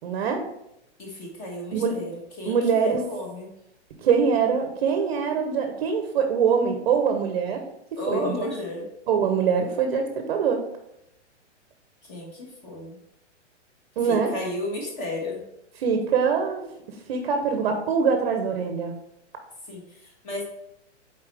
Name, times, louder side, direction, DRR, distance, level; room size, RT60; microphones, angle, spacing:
voice 1, 0.0-0.5 1.7-1.9 2.5-3.0 4.0-7.6 8.1-8.4 9.1-10.6 14.0-14.4 15.8-16.6 17.1-18.9, right 6 dB, 40° right, 5 dB, 0.8 m, -23 dB
voice 2, 1.0-3.5 8.0-8.9 12.0-13.0 14.0-15.4 19.7-20.4, left 1 dB, 25° left, -1 dB, 1.4 m, -33 dB
7.3 x 4.3 x 3.3 m, 0.81 s
hypercardioid pair, 165°, 36 cm